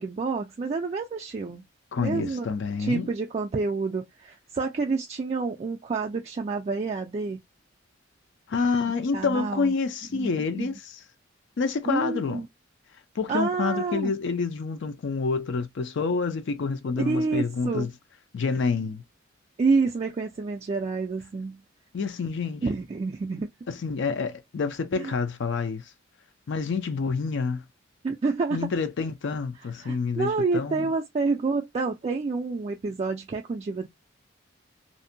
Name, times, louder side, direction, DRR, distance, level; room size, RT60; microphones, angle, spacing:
voice 1, 0.0-1.6 2.0-2.5 2.8-7.4 9.1-9.7 10.1-10.7 11.9-12.5 13.3-14.1 17.0-17.9 19.6-21.6 22.6-23.5 25.0-25.1 28.0-28.7 29.8-33.9, right 4 dB, 35° right, 0.3 m, -28 dB
voice 2, 1.9-3.1 8.5-11.0 11.6-12.4 13.2-17.9 18.3-19.0 21.9-22.6 23.7-25.8 26.5-27.6 28.5-30.9, left 4 dB, 65° left, 0.4 m, -28 dB
2.6 x 2.1 x 2.6 m
head